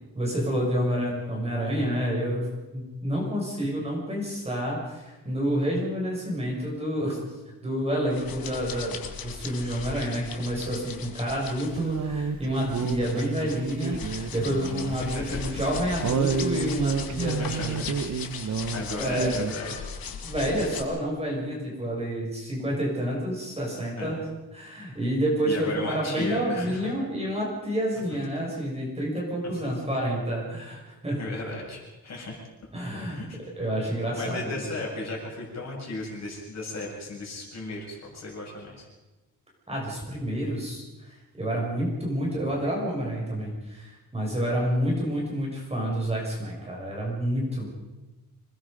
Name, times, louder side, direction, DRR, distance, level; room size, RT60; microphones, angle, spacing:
voice 1, 0.1-7.2 7.6-17.8 18.9-19.3 20.2-24.2 24.5-31.2 32.7-33.2 33.6-34.6 39.7-47.7, equal, 15° right, -3 dB, 6.3 m, -29 dB
sound 1, 8.1-20.8, left 6 dB, 85° left, 2.3 m, -38 dB
sound 2, 11.7-15.1 15.3-15.4 16.0-18.8 19.1-19.5, right 5 dB, 55° right, 1.1 m, -30 dB
voice 2, 15.0-15.4 17.4-17.9 18.7-19.7 24.0-24.3 25.4-26.8 29.4-29.6 31.2-32.3 33.1-33.4 34.1-38.9, left 2 dB, 50° left, -2 dB, 7.5 m, -35 dB
26.5 x 20.5 x 5.3 m, 1.1 s
wide cardioid pair, 155°, 35 cm